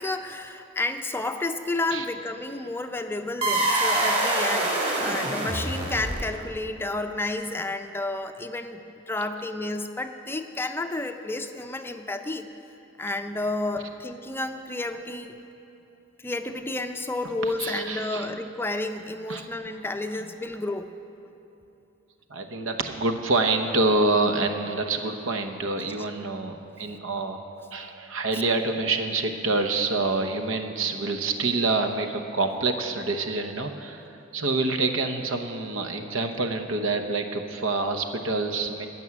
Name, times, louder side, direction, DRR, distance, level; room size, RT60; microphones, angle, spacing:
voice 1, 0.0-12.5 13.0-15.4 16.2-20.9, left 2 dB, 10° left, 7 dB, 0.5 m, -31 dB
sound 1, 3.4-6.6, right 1 dB, 35° right, 2.4 m, -25 dB
voice 2, 17.6-18.3 19.3-19.5 22.3-34.1 34.3-38.9, right 3 dB, 80° right, 6 dB, 1.0 m, -27 dB
15.5 x 6.1 x 9.8 m, 2.9 s
head